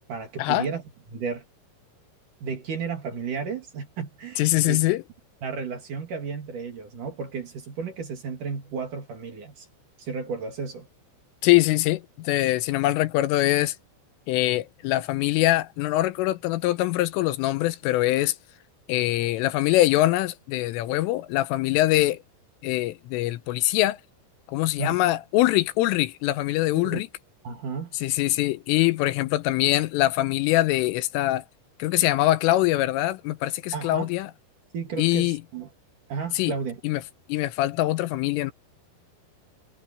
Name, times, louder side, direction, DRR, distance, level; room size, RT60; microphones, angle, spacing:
voice 1, 0.1-0.8 1.1-1.4 2.4-4.8 5.4-9.7 10.0-10.9 24.8-25.0 26.7-27.0 27.4-28.0 33.7-34.1 34.7-35.7 36.1-36.8, right 5 dB, 50° right, 3.3 m, -33 dB
voice 2, 4.4-5.0 11.4-13.8 14.3-18.4 18.9-22.2 22.6-24.0 24.5-27.1 28.0-31.5 31.8-34.3 35.0-35.4 36.4-36.5 36.8-37.0 37.3-38.5, left 16 dB, 85° left, 3.4 m, -23 dB
omnidirectional pair, 5.8 m